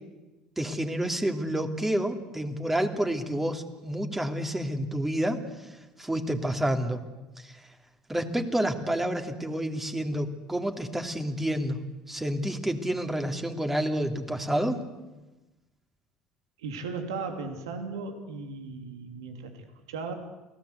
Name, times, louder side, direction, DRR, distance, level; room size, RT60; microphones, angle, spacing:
voice 1, 0.6-5.4 6.0-7.0 7.4-7.5 8.1-11.8 12.1-14.8, right 1 dB, 10° right, 5 dB, 3.0 m, -29 dB
voice 2, 16.6-20.1, right 4 dB, 80° right, 5 dB, 3.0 m, -36 dB
29.0 x 18.0 x 8.2 m, 1.1 s
hypercardioid pair, 70°, 3 cm